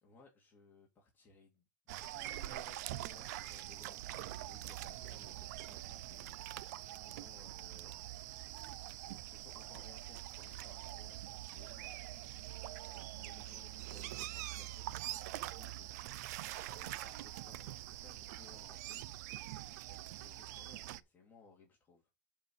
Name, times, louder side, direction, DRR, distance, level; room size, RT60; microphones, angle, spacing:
voice 1, 0.0-6.5 6.8-8.0 9.1-19.4 19.9-22.1, left 3 dB, 20° left, 2.5 m, -62 dB
sound 1, 1.9-21.0, right 15 dB, 60° right, 0.5 m, -45 dB
7.4 x 4.8 x 6.9 m
supercardioid pair, 150°, 10 cm